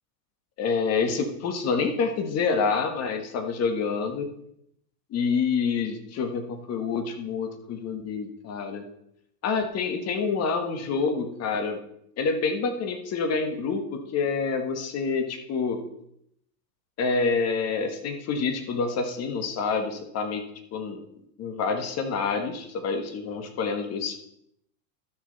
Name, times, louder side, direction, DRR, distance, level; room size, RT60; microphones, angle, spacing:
voice 1, 0.6-4.3 5.1-8.8 9.4-11.8 12.2-15.8 17.0-20.4 20.7-21.0 21.4-24.2, left 5 dB, 30° left, 6 dB, 1.5 m, -27 dB
12.5 x 6.3 x 4.1 m, 0.74 s
hypercardioid pair, 125°, 49 cm